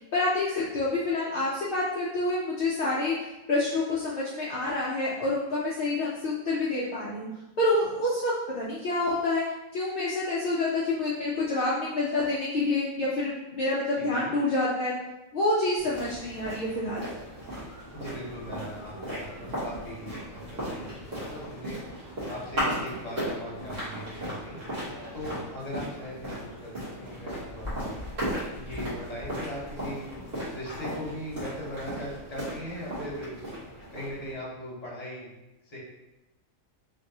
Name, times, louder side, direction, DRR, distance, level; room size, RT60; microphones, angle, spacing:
voice 1, 0.1-7.3 7.6-9.4 9.7-14.9 15.3-17.0, left 2 dB, 60° left, -7 dB, 0.6 m, -27 dB
sound 1, 15.8-34.3, equal, 45° right, 1.4 m, -36 dB
voice 2, 17.9-21.8 22.3-24.6 25.1-28.0 28.5-30.1 30.5-33.4 33.9-35.3 35.6-35.8, equal, 30° left, -6 dB, 1.0 m, -39 dB
3.2 x 2.6 x 2.7 m, 1.0 s
omnidirectional pair, 1.4 m